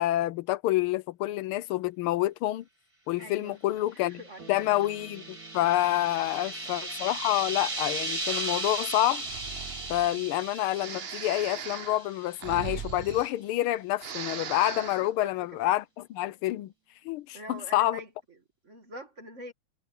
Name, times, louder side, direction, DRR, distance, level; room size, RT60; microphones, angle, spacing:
voice 1, 0.0-2.6 3.1-4.2 4.5-9.2 9.9-16.7 17.0-18.0, left 15 dB, 85° left, 1.5 m, -28 dB
voice 2, 3.2-4.7 6.2-6.7 10.0-10.2 15.0-15.6 17.3-18.4 18.6-19.5, right 1 dB, 35° right, 2.5 m, -46 dB
sound 1, 4.2-12.5, right 2 dB, 20° right, 1.2 m, -36 dB
sound 2, 4.4-13.2, right 5 dB, 65° right, 3.2 m, -56 dB
Breathing, 9.2-10.2 10.8-13.7 13.9-15.1, right 7 dB, 80° right, 0.5 m, -39 dB
omnidirectional pair, 2.3 m